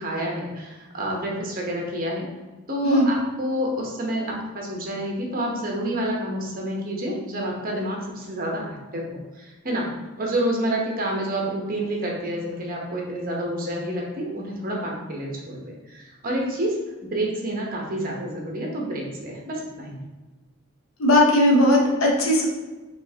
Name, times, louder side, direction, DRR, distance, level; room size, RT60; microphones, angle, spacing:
voice 1, 0.0-2.3 2.7-9.9 10.2-16.8 17.1-20.0, right 1 dB, 45° right, -1 dB, 0.9 m, -28 dB
voice 2, 21.0-22.5, left 1 dB, 75° left, -1 dB, 0.8 m, -18 dB
5.3 x 3.2 x 2.8 m, 1.2 s
head